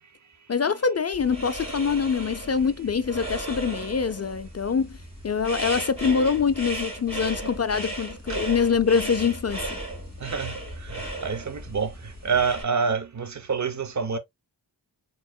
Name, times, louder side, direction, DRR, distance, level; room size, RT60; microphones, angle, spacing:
voice 1, 0.5-5.0 5.2-9.8, left 6 dB, 40° left, 0.4 m, -24 dB
sound 1, 1.1-12.6, right 1 dB, 15° right, 2.6 m, -35 dB
voice 2, 10.2-14.2, right 5 dB, 45° right, 0.7 m, -27 dB
4.2 x 3.8 x 2.2 m
wide cardioid pair, 100°, 41 cm